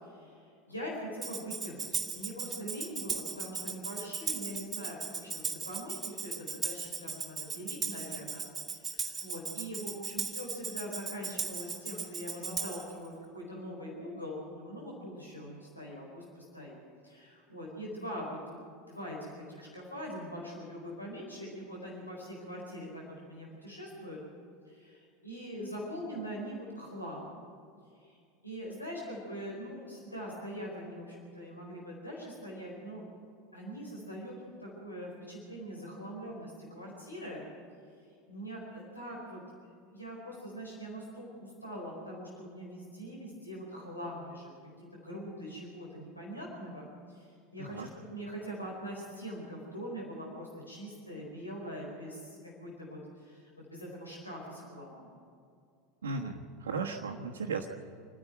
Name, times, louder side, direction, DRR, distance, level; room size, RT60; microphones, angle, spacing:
voice 1, 0.0-8.4 8.7-16.7 17.0-24.2 24.6-27.4 28.0-28.2 28.4-33.0 33.5-37.5 38.3-39.4 39.9-44.5 44.8-55.1 56.0-56.2, equal, 90° left, -3 dB, 4.5 m, -43 dB
Tambourine, 1.2-12.9, right 5 dB, 20° right, 2.3 m, -37 dB
voice 2, 56.0-57.7, right 4 dB, 75° right, -2 dB, 1.3 m, -36 dB
27.5 x 10.5 x 9.2 m, 2.3 s
figure-of-eight pair, 80°, 0 cm